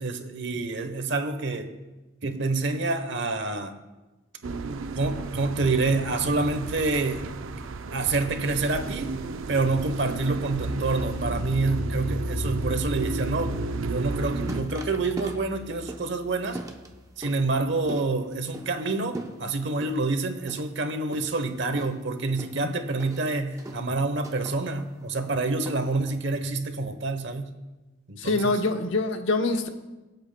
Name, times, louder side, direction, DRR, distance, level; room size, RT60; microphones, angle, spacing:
voice 1, 0.0-1.7 2.2-3.8 4.7-7.3 7.9-9.1 9.5-16.6 17.2-27.5 28.1-28.6, right 3 dB, 60° right, 8 dB, 1.0 m, -27 dB
sound 1, 4.4-14.6, right 3 dB, 75° right, 0.5 m, -33 dB
sound 2, 10.2-17.9, left 1 dB, 30° left, 0.4 m, -37 dB
sound 3, 14.0-26.3, right 1 dB, 15° right, 0.7 m, -43 dB
voice 2, 28.2-29.7, left 2 dB, 70° left, 5 dB, 0.9 m, -25 dB
22.5 x 8.0 x 2.2 m, 1.1 s
head